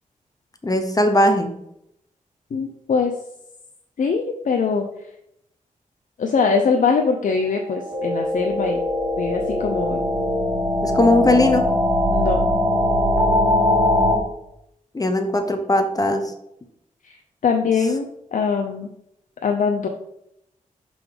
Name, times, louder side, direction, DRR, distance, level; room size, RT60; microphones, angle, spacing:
voice 1, 0.6-1.5 10.8-11.6 14.9-16.2, left 1 dB, 25° left, 6 dB, 0.8 m, -18 dB
voice 2, 2.5-3.1 4.0-4.8 6.2-8.8 9.2-10.0 12.1-12.5 17.0-17.2 17.4-18.9 19.4-19.9, left 5 dB, 65° left, 3 dB, 0.6 m, -22 dB
sound 1, 7.5-14.2, left 1 dB, 15° right, 2.7 m, -21 dB
5.9 x 3.9 x 4.9 m, 0.79 s
cardioid pair, 70°, 14 cm